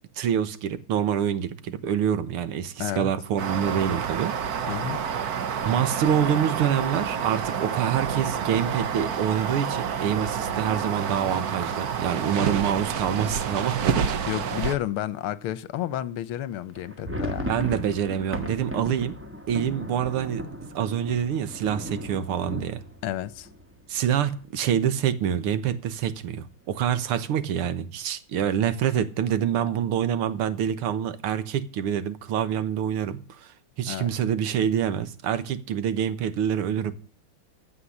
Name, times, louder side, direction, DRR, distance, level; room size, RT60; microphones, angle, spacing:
voice 1, 0.2-4.7 5.6-14.3 17.5-19.2 19.5-20.5 20.8-22.8 23.9-33.5 33.8-36.9, right 9 dB, 85° right, 2.0 m, -26 dB
voice 2, 2.8-3.1 4.7-5.0 14.3-17.5 23.0-23.5 33.9-34.1, left 12 dB, 80° left, 1.7 m, -31 dB
sound 1, 3.4-14.8, right 7 dB, 55° right, 1.3 m, -28 dB
sound 2, 16.7-24.4 24.7-24.9 25.1-25.3 25.9-26.4, equal, 5° right, 1.2 m, -36 dB
15.5 x 5.7 x 9.9 m
omnidirectional pair, 2.4 m